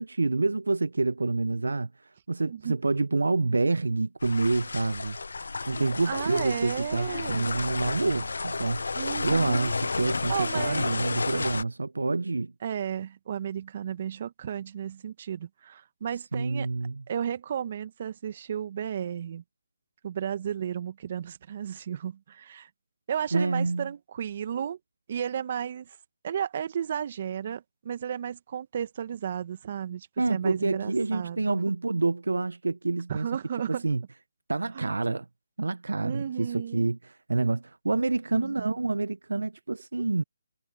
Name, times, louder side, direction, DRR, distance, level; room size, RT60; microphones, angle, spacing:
voice 1, 0.0-5.2 5.7-8.8 9.2-12.5 16.3-17.0 23.3-23.9 30.2-33.3 33.8-34.0 34.5-35.3 35.6-40.2, right 3 dB, 80° right, 0.7 m, -27 dB
voice 2, 2.5-2.8 6.1-7.4 8.9-9.7 10.3-10.9 12.6-16.7 17.1-19.4 20.0-22.7 23.1-24.8 25.1-26.0 26.2-31.6 33.1-33.8 34.7-34.9 36.0-36.9 38.3-38.7 39.3-39.4, right 8 dB, 45° right, 1.7 m, -33 dB
sound 1, 4.2-11.6, left 3 dB, 75° left, 0.9 m, -32 dB
figure-of-eight pair, 150°, 0 cm